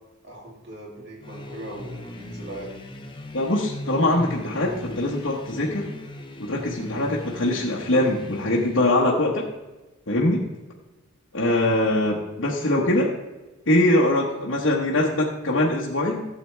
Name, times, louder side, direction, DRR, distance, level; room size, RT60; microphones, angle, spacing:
voice 1, 0.2-2.8 11.7-11.9, right 1 dB, 60° right, -3 dB, 2.9 m, -39 dB
sound 1, 1.2-9.0, left 1 dB, 25° left, 0.9 m, -39 dB
voice 2, 3.3-5.8 6.4-9.4 10.1-10.4 11.3-13.1 13.7-16.3, left 1 dB, 70° left, -4 dB, 1.2 m, -22 dB
12.5 x 7.7 x 3.3 m, 1.1 s
head